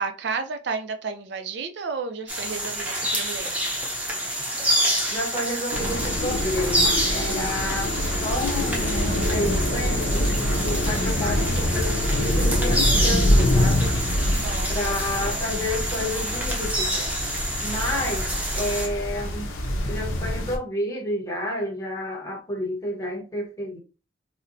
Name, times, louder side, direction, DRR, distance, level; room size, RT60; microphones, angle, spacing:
voice 1, 0.0-3.6 14.3-14.9, right 5 dB, 60° right, 0.5 m, -32 dB
sound 1, 2.3-18.9, right 1 dB, 10° right, 0.6 m, -28 dB
voice 2, 5.1-8.0 8.2-14.0 14.7-17.1 17.6-19.5 19.9-23.8, left 1 dB, 15° left, 0.9 m, -30 dB
sound 2, 5.7-20.6, left 1 dB, 85° left, 0.7 m, -25 dB
4.1 x 2.0 x 2.6 m
head